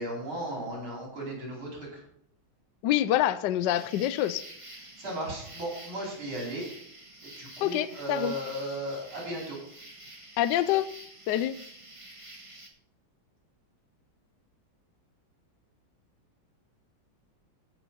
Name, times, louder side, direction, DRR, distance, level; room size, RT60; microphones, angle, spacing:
voice 1, 0.0-2.0 5.0-6.7 7.4-9.6, right 1 dB, 75° right, -3 dB, 5.6 m, -35 dB
voice 2, 2.8-4.4 7.6-8.3 10.4-10.9 11.3-11.5, left 12 dB, 75° left, 14 dB, 1.1 m, -26 dB
sound 1, 3.6-12.7, right 1 dB, 15° right, 1.5 m, -48 dB
15.5 x 6.0 x 5.5 m, 0.70 s
omnidirectional pair, 2.2 m